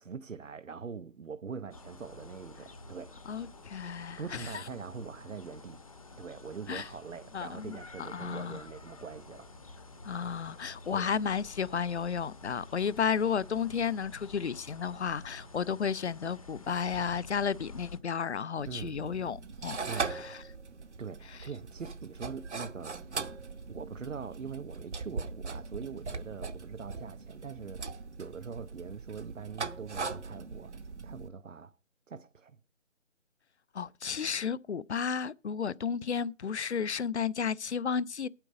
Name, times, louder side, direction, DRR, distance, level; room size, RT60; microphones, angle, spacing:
voice 1, 0.0-3.2 4.2-5.8 6.2-9.5 10.9-11.1 18.7-19.0 19.8-20.2 21.0-23.2 23.7-31.8 32.1-32.6, right 6 dB, 85° right, 0.7 m, -43 dB
sound 1, 1.7-18.0, left 2 dB, 30° left, 0.8 m, -50 dB
voice 2, 3.3-4.6 6.7-6.9 7.3-7.8 8.1-8.6 10.0-20.4 33.7-38.3, left 6 dB, 65° left, 0.5 m, -33 dB
sound 2, 18.6-31.3, right 4 dB, 65° right, 1.0 m, -40 dB
9.1 x 8.5 x 5.0 m
figure-of-eight pair, 155°, 37 cm